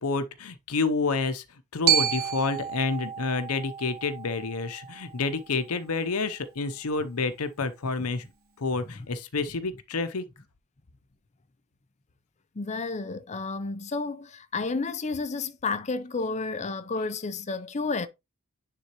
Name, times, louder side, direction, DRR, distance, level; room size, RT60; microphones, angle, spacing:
voice 1, 0.0-1.4 1.7-8.2 8.6-10.2, left 4 dB, 75° left, 0.8 m, -29 dB
Glockenspiel, 1.9-6.0, right 10 dB, 45° right, 1.0 m, -30 dB
voice 2, 12.6-18.1, left 3 dB, 30° left, 0.6 m, -31 dB
9.7 x 3.8 x 3.0 m
head